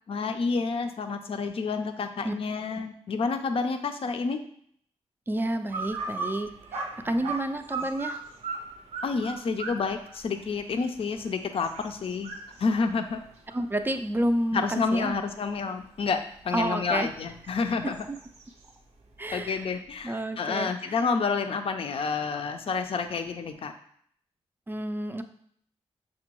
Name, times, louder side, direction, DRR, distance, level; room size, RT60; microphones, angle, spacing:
voice 1, 0.1-4.4 7.0-7.1 9.0-12.3 12.6-13.2 14.5-18.0 19.3-23.7, left 4 dB, 55° left, 7 dB, 0.5 m, -29 dB
voice 2, 5.3-8.2 13.5-15.2 16.5-17.1 17.8-18.2 19.2-21.0 24.7-25.2, right 1 dB, 20° right, 8 dB, 0.4 m, -30 dB
sound 1, 5.7-15.3 15.8-18.7, right 3 dB, 80° right, 0.6 m, -38 dB
6.0 x 2.2 x 3.0 m, 0.64 s
cardioid pair, 60°, 11 cm